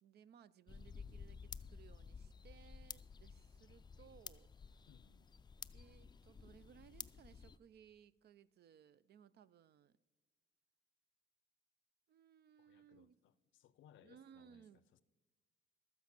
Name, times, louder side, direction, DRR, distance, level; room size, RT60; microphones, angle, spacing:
voice 1, 0.0-4.8 5.7-10.0 12.1-13.2 14.0-14.8, right 8 dB, 55° right, 0.4 m, -63 dB
sound 1, 0.7-7.6, left 5 dB, 20° left, 0.4 m, -53 dB
voice 2, 4.9-5.3 12.6-15.0, left 10 dB, 75° left, 0.5 m, -67 dB
12.5 x 8.3 x 6.0 m
cardioid pair, 90°, 20 cm